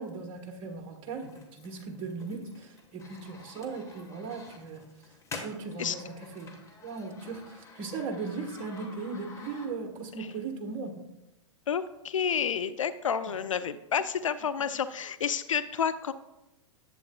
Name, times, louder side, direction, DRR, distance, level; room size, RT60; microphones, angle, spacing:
voice 1, 0.0-4.8 5.4-6.5 6.8-11.0 13.2-13.3, right 4 dB, 35° right, 4 dB, 1.3 m, -38 dB
sound 1, 1.2-10.1, left 3 dB, 20° left, 1.4 m, -48 dB
voice 2, 11.7-16.1, left 7 dB, 80° left, 13 dB, 0.4 m, -30 dB
11.0 x 7.6 x 2.3 m, 0.96 s
figure-of-eight pair, 105°, 16 cm